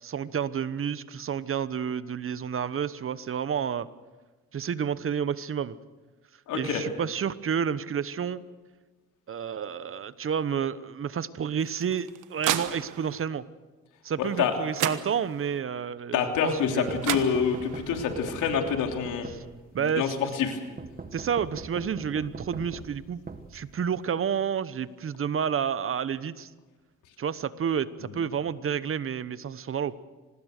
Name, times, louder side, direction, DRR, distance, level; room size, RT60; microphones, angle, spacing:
voice 1, 0.0-3.9 4.5-5.8 6.5-8.4 9.3-13.4 14.0-17.1 19.3-19.4 19.7-20.1 21.1-23.2 23.5-26.5 27.2-29.9, right 7 dB, 45° right, 16 dB, 1.0 m, -30 dB
voice 2, 6.5-6.8 14.2-14.5 16.1-19.3 19.8-20.6, left 7 dB, 85° left, 4 dB, 3.2 m, -27 dB
sound 1, 11.6-13.2 14.4-14.5 14.8-15.6 16.7-16.8 17.0-17.9, right 12 dB, 90° right, 1.4 m, -32 dB
sound 2, 16.9-19.8 20.8-24.1, right 4 dB, 30° right, 1.8 m, -42 dB
25.5 x 20.0 x 6.6 m, 1.3 s
cardioid pair, 90°, 30 cm